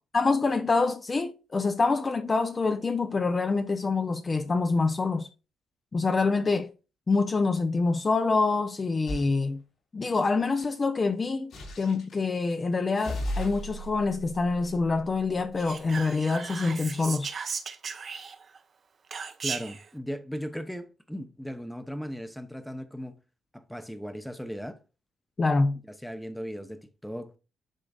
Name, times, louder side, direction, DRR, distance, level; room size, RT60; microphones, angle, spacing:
voice 1, 0.1-5.3 5.9-6.7 7.1-9.6 9.9-11.5 11.8-17.3 25.4-25.8, left 3 dB, 30° left, 0.6 m, -26 dB
sound 1, 9.1-9.4 11.5-12.2 13.0-15.6, equal, 70° left, 3.7 m, -36 dB
Whispering, 15.6-18.6 19.1-19.9, right 5 dB, 45° right, 0.8 m, -36 dB
voice 2, 19.4-23.2 23.5-24.8 25.9-27.3, equal, ahead, 0.8 m, -37 dB
10.0 x 3.8 x 2.4 m
cardioid pair, 90°, 0 cm